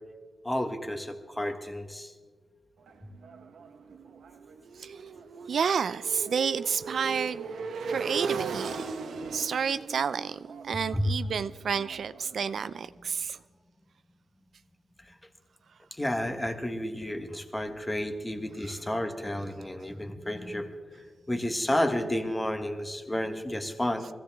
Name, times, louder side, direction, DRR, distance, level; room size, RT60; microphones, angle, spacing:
voice 1, 0.4-2.1 10.9-11.1 16.0-20.7 21.3-24.1, left 1 dB, 10° left, 6 dB, 1.2 m, -31 dB
Motorcycle, 2.9-12.7, right 5 dB, 85° right, 1.0 m, -38 dB
voice 2, 5.5-7.5 7.8-8.8 9.3-10.4 10.6-13.4 18.6-18.7, right 6 dB, 60° right, 14 dB, 0.3 m, -30 dB
23.5 x 15.5 x 3.4 m, 1.5 s
wide cardioid pair, 170°, 0 cm